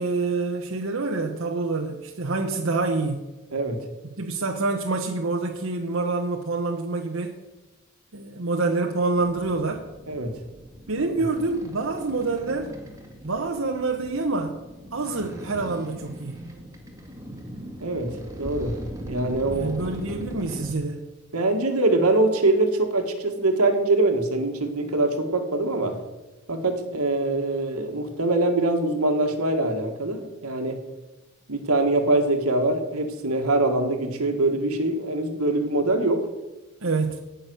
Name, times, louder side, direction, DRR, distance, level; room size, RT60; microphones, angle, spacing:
voice 1, 0.0-3.2 4.2-7.4 8.1-9.8 10.9-12.7 13.2-14.6 14.9-16.5 19.5-21.1 36.8-37.2, right 3 dB, 70° right, 2 dB, 1.0 m, -27 dB
voice 2, 3.5-3.8 10.1-10.3 11.0-11.1 17.8-18.8 19.1-19.9 21.3-26.0 26.5-30.8 31.5-36.3, right 2 dB, 90° right, 5 dB, 1.8 m, -23 dB
sound 1, 9.1-20.7, equal, 15° right, 1.8 m, -40 dB
17.5 x 6.3 x 6.3 m, 1.1 s
head